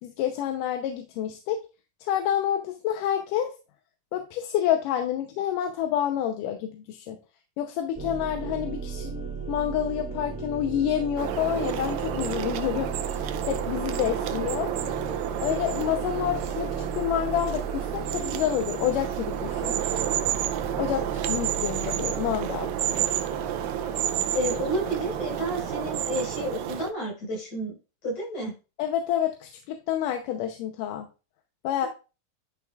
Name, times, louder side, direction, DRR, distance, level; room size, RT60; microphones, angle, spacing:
voice 1, 0.0-1.6 2.0-3.5 4.1-7.2 7.6-9.1 9.5-14.7 15.4-19.7 20.8-22.7 28.8-31.1 31.6-31.9, left 10 dB, 85° left, 4 dB, 2.4 m, -28 dB
sound 1, 7.9-26.9, right 5 dB, 5° right, 1.9 m, -37 dB
sound 2, 11.2-26.9, right 10 dB, 75° right, 1.8 m, -30 dB
voice 2, 24.3-27.8 28.0-28.5 31.8-31.9, equal, 65° left, -3 dB, 6.3 m, -30 dB
11.0 x 6.0 x 2.4 m, 0.31 s
omnidirectional pair, 3.7 m